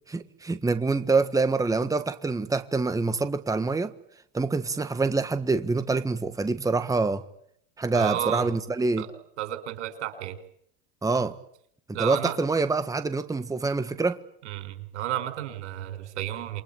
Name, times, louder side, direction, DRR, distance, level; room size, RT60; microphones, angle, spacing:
voice 1, 0.1-3.9 4.3-7.2 7.8-9.0 11.0-11.3 12.0-14.2, right 3 dB, 10° right, 1.5 m, -26 dB
voice 2, 7.9-8.5 9.0-9.1 9.4-10.4 11.9-12.4 14.5-16.6, right 12 dB, 80° right, 5.1 m, -32 dB
28.0 x 23.0 x 8.8 m
hypercardioid pair, 100°, 34 cm